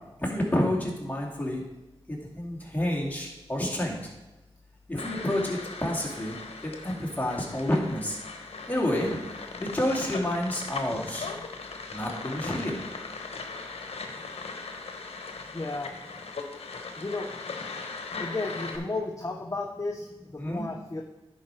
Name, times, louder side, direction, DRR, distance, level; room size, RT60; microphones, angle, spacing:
voice 1, 0.2-1.6 2.1-4.0 4.9-6.4 6.6-8.2 8.7-9.2 9.6-11.2 11.9-12.8 20.4-20.6, left 1 dB, 15° left, -2 dB, 2.4 m, -29 dB
sound 1, 5.0-18.8, left 4 dB, 80° left, 0.9 m, -39 dB
voice 2, 15.5-15.9 17.0-17.3 18.2-21.0, left 3 dB, 30° left, 3 dB, 0.8 m, -33 dB
10.5 x 4.8 x 4.5 m, 1.0 s
cardioid pair, 45°, 10 cm